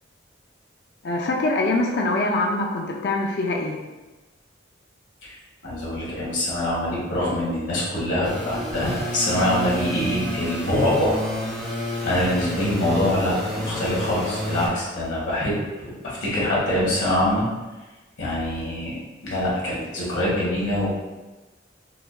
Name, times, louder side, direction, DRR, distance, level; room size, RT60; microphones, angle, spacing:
voice 1, 1.0-3.8, left 2 dB, 55° left, 1 dB, 0.4 m, -24 dB
voice 2, 5.6-11.2 12.0-15.6 15.8-17.4 18.2-19.0 19.2-20.9, left 1 dB, 80° left, -7 dB, 1.4 m, -24 dB
sound 1, 8.2-14.7, equal, 10° left, 0.8 m, -30 dB
4.8 x 2.4 x 2.3 m, 1.2 s
head